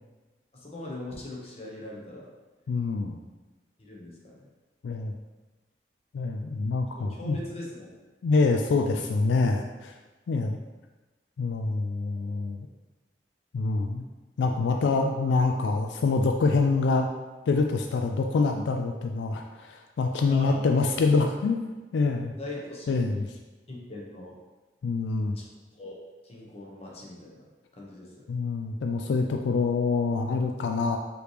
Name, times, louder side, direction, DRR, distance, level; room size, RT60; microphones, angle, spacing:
voice 1, 0.5-2.3 3.8-4.5 7.0-8.0 20.3-20.7 22.4-23.1 23.7-24.4 25.2-25.5 25.8-26.0 26.2-27.4 27.7-28.3, left 2 dB, 35° left, -4 dB, 1.0 m, -40 dB
voice 2, 2.7-3.2 4.8-5.1 6.1-7.4 8.2-9.9 10.3-10.6 11.4-12.7 13.5-14.0 14.4-17.1 17.5-22.3 22.9-23.3 24.8-25.4 28.3-31.0, left 3 dB, 85° left, 3 dB, 0.3 m, -26 dB
4.9 x 3.1 x 3.2 m, 1.2 s
head